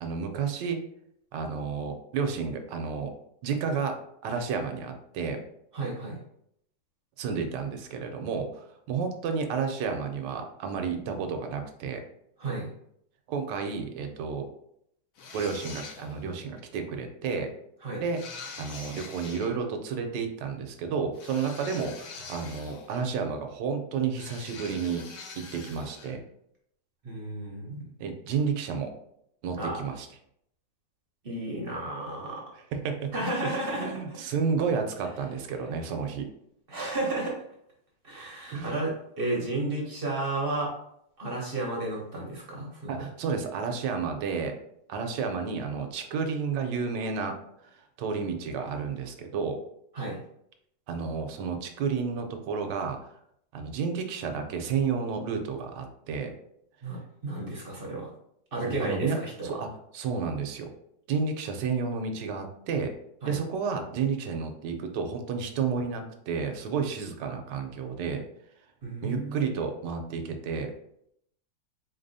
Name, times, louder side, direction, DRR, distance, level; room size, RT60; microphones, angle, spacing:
voice 1, 0.0-0.8 1.3-3.1 3.4-4.0 4.2-5.4 7.2-12.0 13.3-14.5 15.3-17.5 18.0-18.2 18.6-25.0 25.4-26.2 28.0-28.9 29.4-30.1 32.7-33.1 33.4-36.3 38.5-38.7 42.9-44.6 44.9-47.3 48.0-49.6 50.9-53.0 53.5-56.3 58.6-59.2 59.4-60.7 61.1-62.9 63.2-68.2 69.0-70.7, right 5 dB, 80° right, 5 dB, 1.2 m, -31 dB
voice 2, 5.7-6.2 12.4-12.7 17.8-18.0 27.0-27.8 29.6-29.8 31.2-32.4 33.1-34.0 36.7-37.4 38.0-40.8 41.2-43.0 49.9-50.2 56.8-58.1 58.5-59.6 63.2-63.4 68.8-69.5, right 2 dB, 45° right, -2 dB, 0.8 m, -32 dB
sound 1, 15.2-16.3 18.1-19.5 21.1-23.2 24.1-26.2, left 4 dB, 65° left, 0.9 m, -44 dB
4.0 x 3.3 x 2.6 m, 0.73 s
omnidirectional pair, 1.9 m